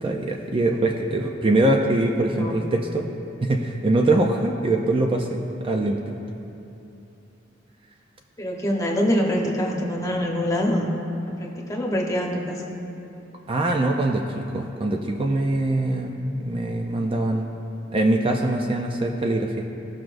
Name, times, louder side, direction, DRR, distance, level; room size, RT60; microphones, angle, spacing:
voice 1, 0.0-3.1 3.4-6.2 13.5-17.5 17.9-19.6, right 2 dB, 30° right, 1 dB, 0.5 m, -23 dB
voice 2, 8.4-10.9 11.4-12.6, equal, 20° left, -2 dB, 1.1 m, -24 dB
17.0 x 6.0 x 2.6 m, 2.9 s
head